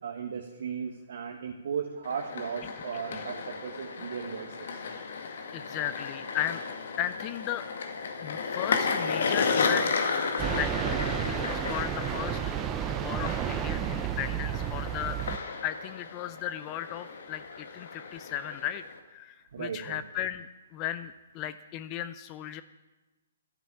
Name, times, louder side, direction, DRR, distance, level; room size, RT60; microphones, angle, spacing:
voice 1, 0.0-4.8 19.5-20.0, right 7 dB, 60° right, 2 dB, 1.5 m, -36 dB
sound 1, 2.0-19.0, left 5 dB, 60° left, 1.9 m, -33 dB
voice 2, 5.2-6.6 7.0-7.6 8.2-10.0 10.5-10.7 11.2-15.2 15.6-18.8 19.1-22.6, left 11 dB, 30° left, 13 dB, 0.5 m, -36 dB
sound 2, 10.4-15.4, right 11 dB, 20° right, 0.5 m, -31 dB
11.5 x 10.0 x 8.6 m, 1.1 s
figure-of-eight pair, 130°, 0 cm